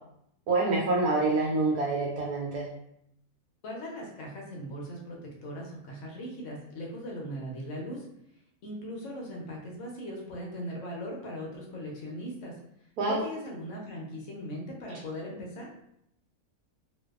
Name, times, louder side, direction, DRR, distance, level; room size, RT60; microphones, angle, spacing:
voice 1, 0.5-2.7 13.0-13.2, right 3 dB, 85° right, -3 dB, 1.1 m, -26 dB
voice 2, 3.6-8.1 8.6-12.5 13.1-15.7, equal, 65° left, -1 dB, 0.8 m, -39 dB
2.6 x 2.2 x 2.3 m, 0.75 s
omnidirectional pair, 1.6 m